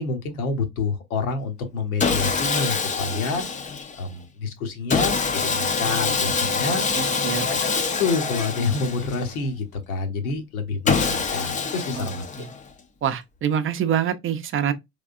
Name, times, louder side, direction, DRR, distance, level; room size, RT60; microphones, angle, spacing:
voice 1, 0.0-3.4 4.0-6.8 7.4-7.6 8.0-12.2, left 4 dB, 70° left, 1.2 m, -28 dB
Sawing, 2.0-4.0 4.9-9.4 10.9-12.7, left 5 dB, 20° left, 0.6 m, -25 dB
voice 2, 6.7-7.5 12.0-12.1 12.4-12.5 13.0-14.7, right 9 dB, 30° right, 0.6 m, -26 dB
3.6 x 3.2 x 2.4 m
hypercardioid pair, 70°, 44 cm